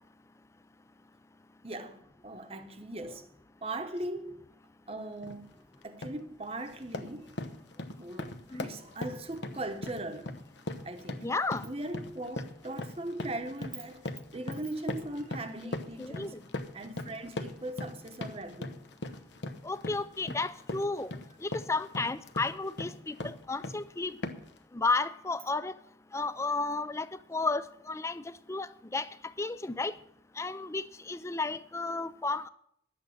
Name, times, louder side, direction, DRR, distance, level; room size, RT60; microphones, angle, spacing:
voice 1, 1.6-3.3 3.6-4.4 4.9-7.4 8.0-10.3 10.8-11.3 11.6-16.4 16.7-18.8, right 1 dB, 30° right, 0.9 m, -39 dB
sound 1, 5.2-5.4 5.8-6.2 6.6-23.9 24.2-24.6, left 2 dB, 65° left, 0.9 m, -40 dB
voice 2, 11.2-11.6 16.0-16.3 19.6-21.1 21.4-24.2 24.7-25.7 26.1-28.2 28.5-29.1 29.4-29.9 30.4-32.5, left 3 dB, 15° left, 0.4 m, -32 dB
12.0 x 8.5 x 6.5 m
head